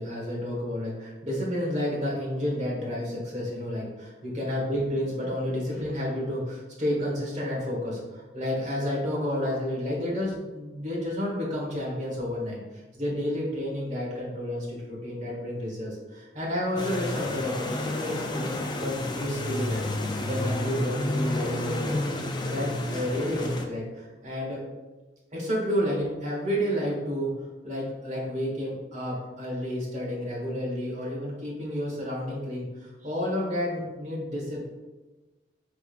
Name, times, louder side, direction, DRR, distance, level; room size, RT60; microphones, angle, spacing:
voice 1, 0.0-12.6 12.9-19.9 20.2-22.0 22.4-24.6 25.3-27.3 27.6-34.7, equal, 40° right, -4 dB, 1.3 m, -30 dB
sound 1, 16.8-23.7, left 1 dB, 25° left, 0.4 m, -30 dB
4.7 x 3.5 x 2.5 m, 1.2 s
head